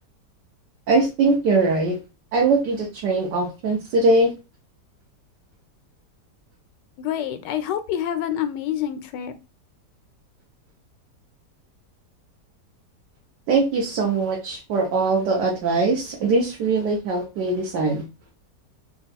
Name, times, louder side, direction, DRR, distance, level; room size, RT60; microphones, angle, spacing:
voice 1, 0.9-2.0 2.3-4.3 13.5-18.0, right 3 dB, 75° right, -1 dB, 1.5 m, -21 dB
voice 2, 7.0-9.4, left 10 dB, 90° left, 11 dB, 1.3 m, -27 dB
3.6 x 2.4 x 4.0 m, 0.28 s
omnidirectional pair, 1.8 m